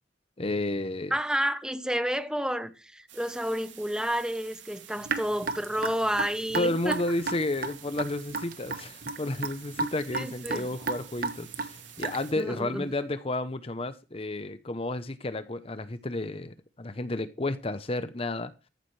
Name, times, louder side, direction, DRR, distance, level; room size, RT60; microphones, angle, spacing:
voice 1, 0.4-1.1 6.5-18.5, left 2 dB, 30° left, 0.8 m, -32 dB
voice 2, 1.1-7.0 10.1-10.7 12.4-12.9, equal, 5° right, 0.9 m, -30 dB
sound 1, 3.1-12.3, right 9 dB, 85° right, 2.9 m, -49 dB
Raindrop / Drip, 5.1-12.4, right 4 dB, 50° right, 1.3 m, -33 dB
14.5 x 12.0 x 3.3 m
head